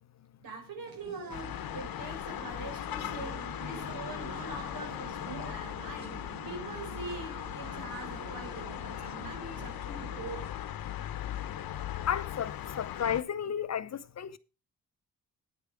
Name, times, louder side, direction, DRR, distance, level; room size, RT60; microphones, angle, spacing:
voice 1, 0.4-10.5, right 3 dB, 75° right, 5.0 m, -43 dB
sound 1, 0.9-10.5, right 5 dB, 50° right, 1.8 m, -49 dB
sound 2, 1.3-13.2, left 11 dB, 75° left, 0.9 m, -39 dB
voice 2, 12.1-14.4, left 8 dB, 50° left, 0.7 m, -33 dB
9.4 x 8.7 x 4.8 m
cardioid pair, 110°, 35 cm